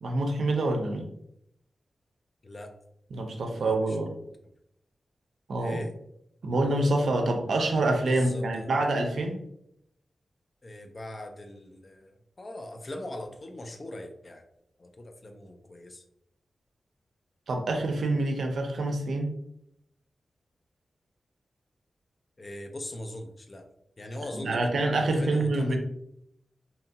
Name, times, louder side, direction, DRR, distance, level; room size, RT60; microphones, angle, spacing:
voice 1, 0.0-1.1 3.1-4.2 5.5-5.8 6.4-9.4 17.5-19.3 24.3-25.8, right 2 dB, 75° right, 3 dB, 0.4 m, -26 dB
voice 2, 2.4-2.8 3.5-4.0 5.6-5.9 8.1-8.7 10.6-14.4 14.8-16.0 22.4-23.7 24.0-25.8, left 1 dB, 30° left, 5 dB, 0.3 m, -40 dB
2.8 x 2.3 x 2.7 m, 0.76 s
wide cardioid pair, 165°, 0 cm